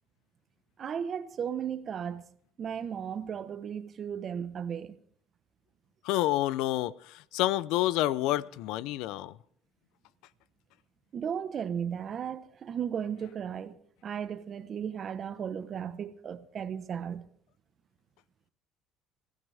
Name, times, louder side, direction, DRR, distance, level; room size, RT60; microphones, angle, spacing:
voice 1, 0.8-2.3 2.6-5.0 11.1-13.8 14.0-17.3, right 8 dB, 45° right, 1.1 m, -35 dB
voice 2, 6.0-6.9 7.3-9.3, left 15 dB, 80° left, 0.5 m, -28 dB
21.5 x 15.5 x 3.5 m
supercardioid pair, 95°, 0 cm